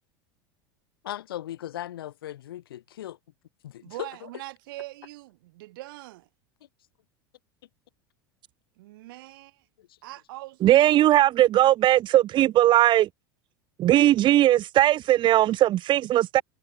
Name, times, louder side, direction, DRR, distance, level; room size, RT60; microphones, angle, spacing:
voice 1, 1.0-3.2 3.6-4.3 9.8-9.9, left 12 dB, 75° left, 3.7 m, -37 dB
voice 2, 3.8-6.3 8.8-9.7 10.0-11.1, right 19 dB, 70° right, 7.6 m, -42 dB
voice 3, 10.6-13.1 13.8-16.4, right 13 dB, 40° right, 0.8 m, -19 dB
hypercardioid pair, 85°, 12 cm